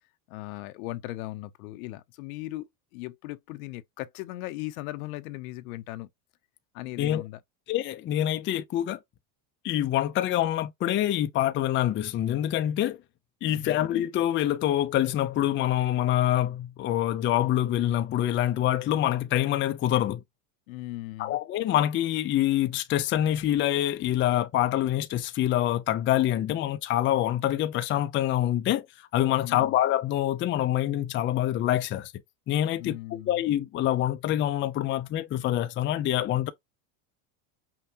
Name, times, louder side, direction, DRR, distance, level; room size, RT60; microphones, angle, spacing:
voice 1, 0.3-6.1 6.7-7.4 13.5-13.8 20.7-21.4 29.4-29.8 32.8-33.5, left 17 dB, 75° left, 0.8 m, -38 dB
voice 2, 7.7-9.0 9.6-13.0 13.4-20.2 21.2-28.9 29.1-32.1 32.5-36.5, left 12 dB, 30° left, 0.5 m, -26 dB
5.7 x 2.3 x 2.8 m
supercardioid pair, 125°, 42 cm